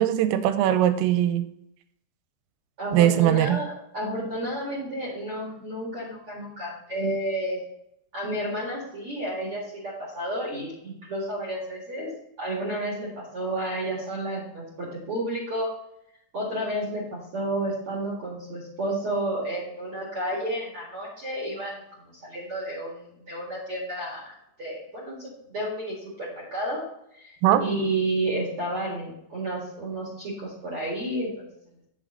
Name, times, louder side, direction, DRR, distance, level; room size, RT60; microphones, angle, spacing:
voice 1, 0.0-1.5 2.9-3.6 27.4-27.6, right 12 dB, 90° right, 10 dB, 3.2 m, -20 dB
voice 2, 2.8-7.6 8.1-12.1 12.4-15.7 16.3-21.8 22.2-24.3 24.6-26.8 27.1-31.5, right 1 dB, 50° right, -4 dB, 1.7 m, -31 dB
9.0 x 6.4 x 3.8 m, 0.78 s
omnidirectional pair, 5.8 m